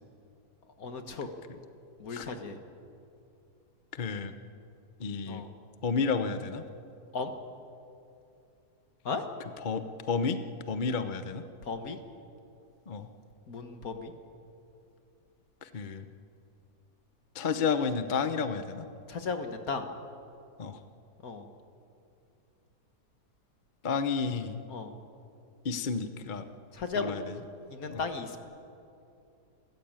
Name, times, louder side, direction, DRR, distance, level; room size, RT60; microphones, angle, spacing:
voice 1, 0.8-1.3 2.0-2.6 5.3-5.5 7.1-7.3 9.1-9.2 11.6-12.0 13.5-14.1 19.1-19.9 21.2-21.5 24.7-24.9 26.7-27.2 27.7-28.4, left 4 dB, 60° left, 6 dB, 2.0 m, -35 dB
voice 2, 3.9-4.3 5.0-5.4 5.8-6.6 9.6-10.4 10.7-11.4 12.9-13.1 15.6-16.1 17.3-18.9 20.6-20.8 23.8-24.6 25.6-26.5 26.9-27.4 27.9-28.0, left 5 dB, 35° left, 9 dB, 0.8 m, -31 dB
29.5 x 14.5 x 8.9 m, 2.6 s
omnidirectional pair, 1.8 m